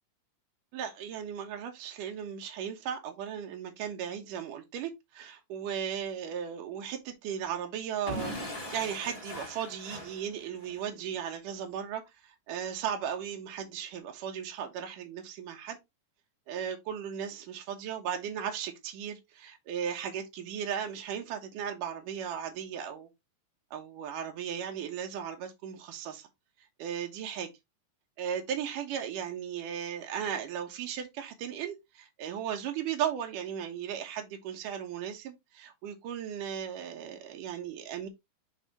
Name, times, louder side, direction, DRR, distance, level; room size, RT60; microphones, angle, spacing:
voice 1, 0.7-15.8 16.5-23.1 23.7-26.3 26.8-27.5 28.2-38.1, right 8 dB, 75° right, 2.7 m, -36 dB
Explosion / Shatter, 8.1-10.8, equal, 35° left, 0.5 m, -40 dB
9.8 x 3.4 x 3.0 m
omnidirectional pair, 3.8 m